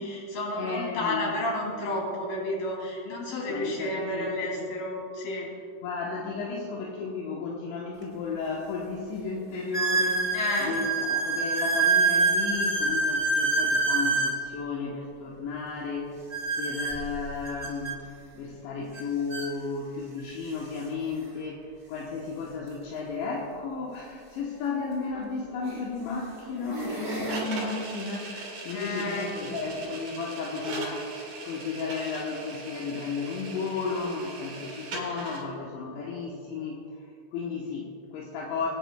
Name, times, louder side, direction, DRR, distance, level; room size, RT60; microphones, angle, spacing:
voice 1, 0.0-5.5 10.3-10.8 28.7-29.4, left 1 dB, 60° left, -3 dB, 4.5 m, -31 dB
voice 2, 0.6-1.3 3.5-4.3 4.6-4.7 5.8-16.2 16.6-18.1 18.4-31.1 31.4-38.7, left 4 dB, 80° left, -3 dB, 3.3 m, -34 dB
sound 1, 8.0-8.1 8.7-8.8 9.7-14.4 16.3-17.9 18.9-19.0 19.3-19.5 20.3-20.4 22.6-22.7 24.8-24.9 25.6-25.9 26.4-27.4, right 3 dB, 10° right, 1.7 m, -26 dB
sound 2, 27.3-35.4, right 3 dB, 45° right, 4.7 m, -39 dB
24.5 x 10.0 x 2.3 m, 2.5 s
omnidirectional pair, 5.1 m